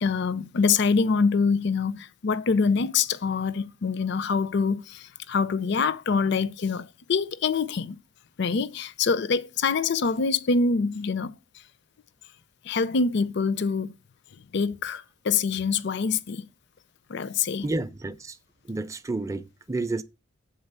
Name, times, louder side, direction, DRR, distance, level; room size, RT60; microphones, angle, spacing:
voice 1, 0.0-8.0 8.4-11.3 12.6-13.9 14.5-16.4 17.1-17.7, left 5 dB, 55° left, 0.4 m, -25 dB
voice 2, 17.6-18.4 18.7-20.0, right 2 dB, 15° right, 0.4 m, -30 dB
8.0 x 3.9 x 6.6 m
head